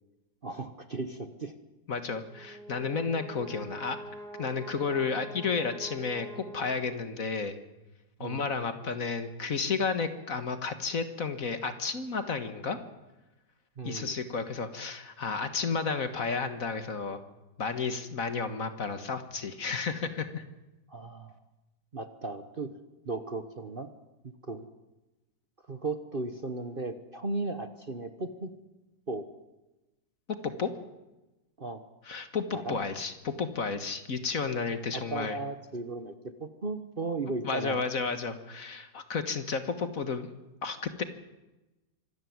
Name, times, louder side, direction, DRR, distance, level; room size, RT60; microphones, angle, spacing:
voice 1, 0.4-1.5 8.2-8.4 13.8-14.2 20.9-21.3 21.9-22.7 23.0-23.9 24.2-24.7 25.7-28.5 29.1-29.3 31.6-31.8 32.5-32.8 34.9-37.8, right 3 dB, 35° right, 9 dB, 1.2 m, -36 dB
voice 2, 1.9-4.0 4.4-7.6 8.2-12.8 13.8-17.2 17.6-20.4 30.4-30.7 32.1-35.4 37.4-40.3 40.6-41.0, left 5 dB, 50° left, 10 dB, 1.8 m, -32 dB
Brass instrument, 2.1-7.2, right 1 dB, 55° right, 3.0 m, -45 dB
25.5 x 13.5 x 9.5 m, 1.0 s
omnidirectional pair, 1.9 m